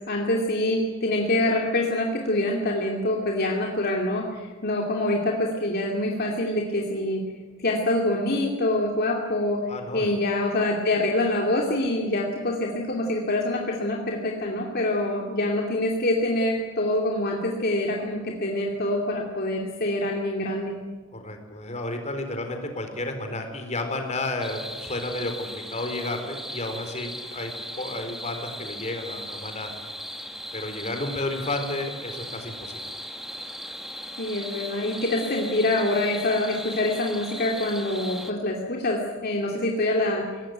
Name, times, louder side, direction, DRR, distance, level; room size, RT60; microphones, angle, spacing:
voice 1, 0.1-7.2 7.6-9.6 9.9-20.7 34.2-40.2, left 1 dB, 55° left, 0 dB, 2.7 m, -25 dB
voice 2, 9.7-10.1 21.1-27.5 27.8-29.7 30.5-32.9, left 2 dB, 35° left, 5 dB, 4.2 m, -32 dB
sound 1, 24.4-38.3, equal, ahead, 2.0 m, -38 dB
23.0 x 19.0 x 9.3 m, 1.4 s
head